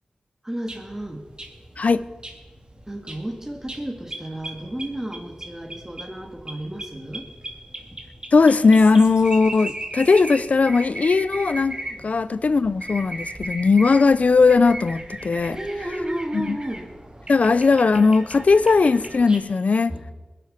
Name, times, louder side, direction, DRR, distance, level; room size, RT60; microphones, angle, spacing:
voice 1, 0.4-1.2 2.9-7.3 11.8-12.1 15.5-16.9 19.9-20.1, right 1 dB, 15° right, 2.9 m, -32 dB
sound 1, 0.7-19.4, right 1 dB, 40° right, 2.6 m, -37 dB
voice 2, 8.3-11.7 12.0-15.6 16.3-16.6 17.3-20.0, left 4 dB, 65° left, 0.6 m, -18 dB
21.0 x 11.0 x 5.9 m
cardioid pair, 50°, 3 cm